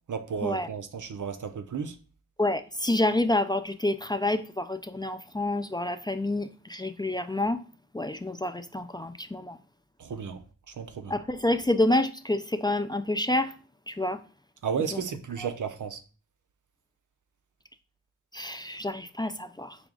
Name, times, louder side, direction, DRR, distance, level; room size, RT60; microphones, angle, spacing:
voice 1, 0.1-2.0 10.0-11.2 14.6-16.0, right 6 dB, 80° right, 0.5 m, -33 dB
voice 2, 2.4-7.6 7.9-9.6 11.1-13.5 13.9-14.2 14.9-15.0 18.3-19.8, left 1 dB, 15° left, 0.3 m, -28 dB
4.9 x 2.4 x 3.6 m
cardioid pair, 45°, 30 cm